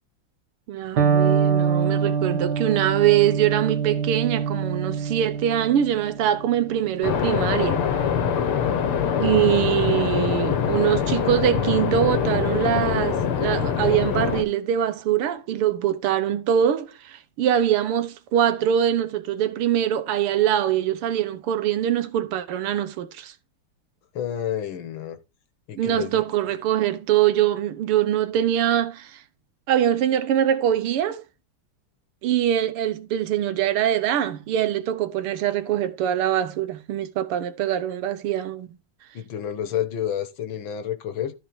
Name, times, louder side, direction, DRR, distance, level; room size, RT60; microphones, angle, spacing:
voice 1, 0.7-7.8 9.2-23.3 25.8-29.2 29.7-31.2 32.2-38.7, right 10 dB, 90° right, 1.9 m, -23 dB
Electric guitar, 1.0-8.8, right 6 dB, 55° right, 1.9 m, -25 dB
sound 1, 7.0-14.4, left 8 dB, 85° left, 2.2 m, -24 dB
voice 2, 24.1-25.2 25.7-26.2 39.1-41.3, left 10 dB, 65° left, 1.9 m, -29 dB
13.0 x 4.3 x 4.6 m
omnidirectional pair, 2.4 m